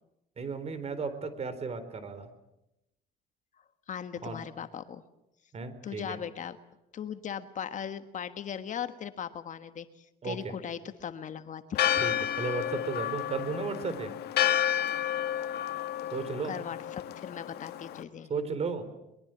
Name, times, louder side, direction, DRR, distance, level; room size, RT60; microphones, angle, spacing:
voice 1, 0.4-2.3 4.2-4.4 5.5-6.2 10.2-10.5 12.0-14.1 16.1-16.5 18.3-18.9, right 4 dB, 40° right, 12 dB, 4.0 m, -34 dB
voice 2, 3.9-5.0 5.8-6.6 6.9-12.0 16.5-18.3, left 8 dB, 45° left, 10 dB, 1.5 m, -38 dB
Church bell, 11.7-18.0, left 11 dB, 75° left, 1.7 m, -31 dB
23.0 x 22.5 x 9.0 m, 0.89 s
cardioid pair, 110°, 17 cm